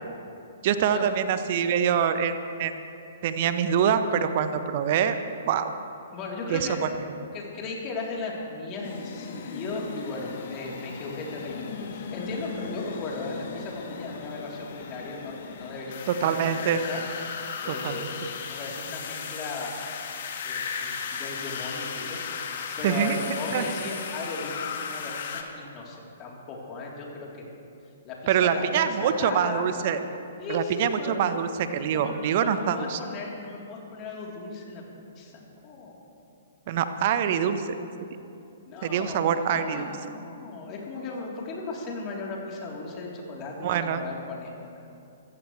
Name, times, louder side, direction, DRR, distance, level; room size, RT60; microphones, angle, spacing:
voice 1, 0.6-2.7 3.2-5.2 5.5-5.7 6.5-6.9 16.1-16.8 17.7-17.9 22.8-23.2 23.5-23.6 28.3-30.0 30.5-33.0 36.7-37.8 38.8-39.9 43.6-44.0, right 8 dB, 45° right, 10 dB, 1.1 m, -25 dB
voice 2, 6.1-6.8 7.3-17.0 17.6-18.1 18.4-19.8 20.4-22.2 22.8-27.5 28.0-29.6 30.4-31.1 31.9-34.8 35.2-36.0 38.7-44.9, left 3 dB, 30° left, -3 dB, 3.6 m, -36 dB
sound 1, 8.8-25.4, left 6 dB, 55° left, 1.6 m, -36 dB
26.0 x 14.5 x 3.3 m, 2.7 s
figure-of-eight pair, 120°, 0 cm